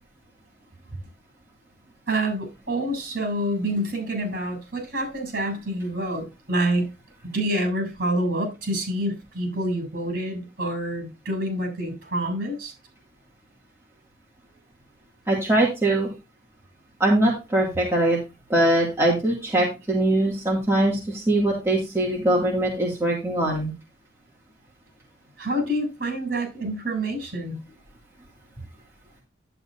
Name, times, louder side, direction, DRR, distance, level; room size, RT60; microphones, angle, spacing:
voice 1, 2.1-6.9 7.3-12.7 25.4-27.6, right 1 dB, 55° right, 7.1 m, -27 dB
voice 2, 15.3-16.1 17.0-18.2 18.5-23.7, right 1 dB, 15° right, 2.3 m, -22 dB
11.0 x 9.7 x 2.6 m
head